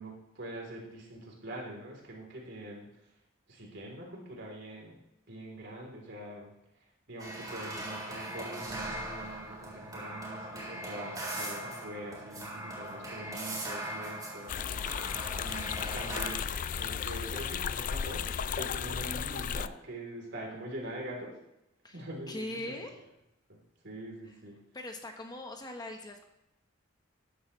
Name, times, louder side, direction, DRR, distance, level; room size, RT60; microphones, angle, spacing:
voice 1, 0.0-2.9 3.5-5.0 5.3-6.5 7.1-15.0 15.4-21.4 21.9-22.5 23.5-23.6 23.8-24.6, right 1 dB, 65° right, -1 dB, 3.6 m, -43 dB
sound 1, 7.2-16.3, right 1 dB, 20° right, 4.3 m, -40 dB
sound 2, 14.5-19.7, left 7 dB, 45° left, 0.3 m, -34 dB
voice 2, 21.8-23.0 24.7-26.2, left 1 dB, 20° left, 3 dB, 1.2 m, -41 dB
13.5 x 10.5 x 3.3 m, 0.87 s
head